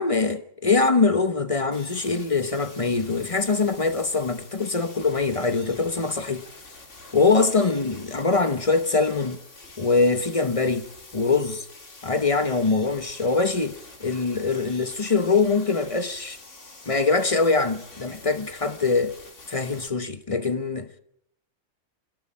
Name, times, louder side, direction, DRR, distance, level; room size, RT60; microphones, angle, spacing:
voice 1, 0.0-6.4 7.1-9.4 9.8-11.7 12.0-16.4 16.9-19.2 19.5-21.0, left 4 dB, 30° left, 0.9 m, -23 dB
sound 1, 1.7-19.9, left 3 dB, 55° left, 3.0 m, -46 dB
27.5 x 13.0 x 8.7 m
omnidirectional pair, 1.5 m